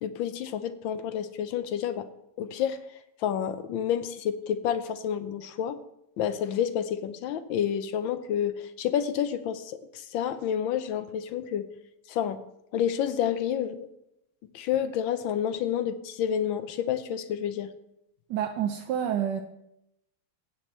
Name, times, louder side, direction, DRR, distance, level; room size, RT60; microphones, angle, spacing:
voice 1, 0.0-2.1 2.4-2.8 3.2-5.8 6.2-11.7 12.1-12.4 12.7-13.9 14.5-17.7, left 9 dB, 75° left, 11 dB, 1.4 m, -29 dB
voice 2, 18.3-19.4, right 9 dB, 70° right, 4 dB, 1.2 m, -28 dB
15.0 x 8.3 x 3.0 m, 0.81 s
omnidirectional pair, 2.2 m